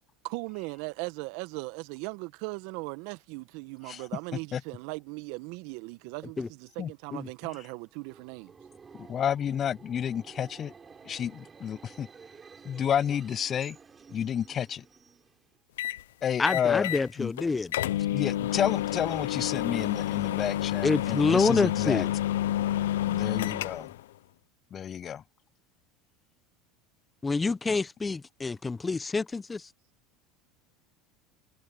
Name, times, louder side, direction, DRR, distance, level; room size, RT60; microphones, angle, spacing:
voice 1, 0.2-8.5, right 26 dB, 65° right, 1.6 m, -38 dB
Subway metro underground, 7.9-15.6, right 5 dB, 25° right, 4.7 m, -52 dB
voice 2, 9.0-10.7 11.0-12.1 12.6-13.8 14.1-14.8 16.2-16.9 17.2-17.3 18.1-22.0 23.0-23.9 24.7-25.2, left 9 dB, 40° left, 0.6 m, -30 dB
sound 1, 15.8-16.0 16.5-17.1 17.4-17.5 17.7-24.0, left 13 dB, 80° left, 0.8 m, -29 dB
voice 3, 16.4-17.7 20.8-22.1 27.2-29.7, left 4 dB, 20° left, 1.2 m, -27 dB
hypercardioid pair, 85°, 0 cm